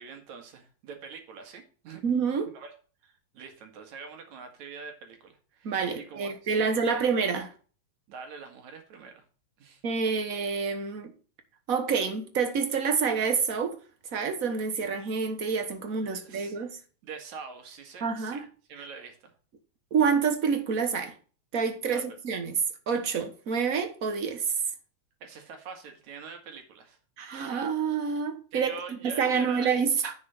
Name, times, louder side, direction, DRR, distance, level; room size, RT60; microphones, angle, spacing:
voice 1, 0.0-2.0 2.5-2.7 3.0-7.1 8.1-9.2 9.6-9.8 16.0-16.6 17.0-18.4 18.7-19.3 21.9-22.1 25.2-27.0 28.5-29.7, right 5 dB, 75° right, 3.1 m, -44 dB
voice 2, 2.0-2.5 5.6-7.5 9.8-11.1 11.7-13.8 14.1-16.8 18.0-18.5 19.9-21.1 21.5-22.6 22.9-24.5 27.2-30.1, right 6 dB, 60° right, 0.9 m, -28 dB
10.5 x 6.5 x 4.3 m
omnidirectional pair, 3.3 m